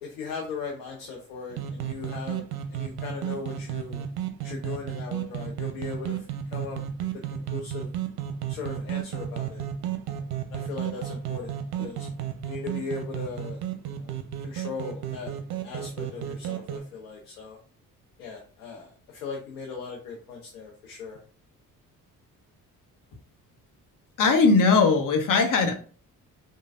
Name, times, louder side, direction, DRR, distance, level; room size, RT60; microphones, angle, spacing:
voice 1, 0.0-2.4 2.7-4.1 4.4-6.2 6.5-6.8 7.3-7.9 8.5-9.7 10.1-12.1 12.4-13.6 13.9-14.1 14.4-15.4 15.6-17.6 18.2-21.2, left 4 dB, 85° left, 1 dB, 0.6 m, -38 dB
sound 1, 1.5-16.8, right 9 dB, 60° right, 0.6 m, -33 dB
voice 2, 24.2-25.7, left 4 dB, 45° left, 5 dB, 0.8 m, -19 dB
3.2 x 2.2 x 2.4 m, 0.38 s
hypercardioid pair, 45°, 43 cm